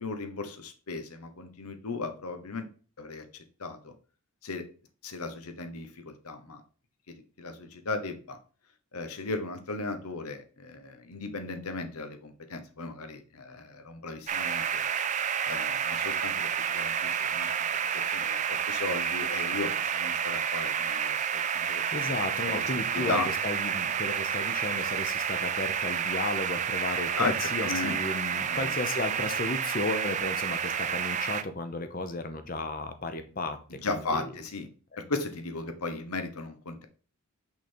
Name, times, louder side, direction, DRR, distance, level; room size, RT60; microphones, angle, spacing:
voice 1, 0.0-2.7 3.0-3.9 4.4-4.7 5.0-6.6 7.1-8.4 8.9-14.9 15.4-17.5 18.1-22.2 22.5-22.6 22.9-23.3 27.2-28.0 28.5-28.8 33.7-34.7 35.0-36.9, left 3 dB, 85° left, 7 dB, 1.0 m, -36 dB
sound 1, 14.3-31.4, right 8 dB, 30° right, 0.3 m, -30 dB
voice 2, 21.5-34.3, left 2 dB, 40° left, 8 dB, 0.8 m, -34 dB
5.8 x 3.9 x 4.4 m, 0.39 s
head